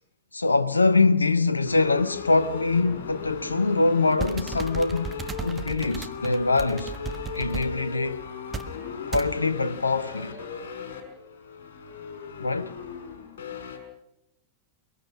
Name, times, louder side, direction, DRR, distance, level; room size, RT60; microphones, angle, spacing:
voice 1, 0.3-5.1 5.4-6.9 7.3-8.2 9.1-10.4 12.4-12.7, left 3 dB, 80° left, 0.9 m, -23 dB
sound 1, 1.6-13.8, left 6 dB, 60° left, 5.4 m, -37 dB
sound 2, 4.1-7.7 8.5-8.7 9.1-9.3, right 5 dB, 20° right, 1.4 m, -35 dB
23.0 x 22.5 x 6.0 m
figure-of-eight pair, 90°, 0 cm